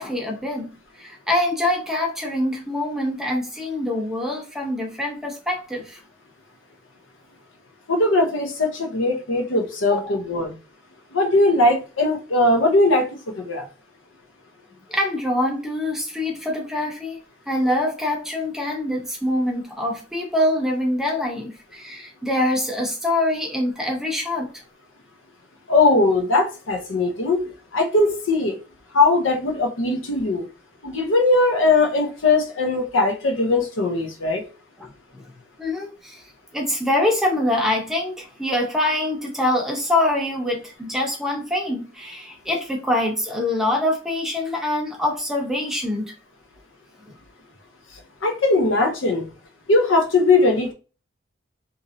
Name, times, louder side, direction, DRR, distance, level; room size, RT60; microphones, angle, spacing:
voice 1, 0.0-6.0 9.8-10.2 14.9-17.2 17.5-24.5 35.6-36.2 36.5-46.1, left 1 dB, ahead, 0.7 m, -24 dB
voice 2, 7.9-10.6 11.1-13.7 25.7-27.5 27.7-28.6 28.9-30.5 30.8-34.4 48.2-49.3 49.7-50.7, left 2 dB, 85° left, 0.7 m, -20 dB
3.0 x 2.6 x 2.6 m
head